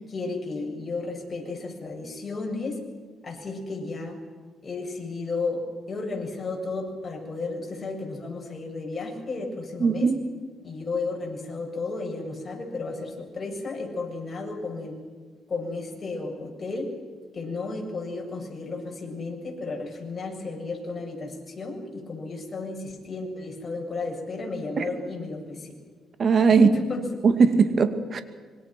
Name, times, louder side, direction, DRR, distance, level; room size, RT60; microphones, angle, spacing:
voice 1, 0.1-2.8 3.2-4.2 4.6-5.6 5.9-10.1 10.6-15.0 15.5-16.9 17.3-25.7 26.5-27.0, left 3 dB, 35° left, 1 dB, 7.7 m, -33 dB
voice 2, 9.8-10.2 24.8-24.9 26.2-26.7 27.2-28.2, right 5 dB, 50° right, 9 dB, 2.4 m, -19 dB
26.5 x 23.5 x 6.2 m, 1.5 s
cardioid pair, 90°, 0 cm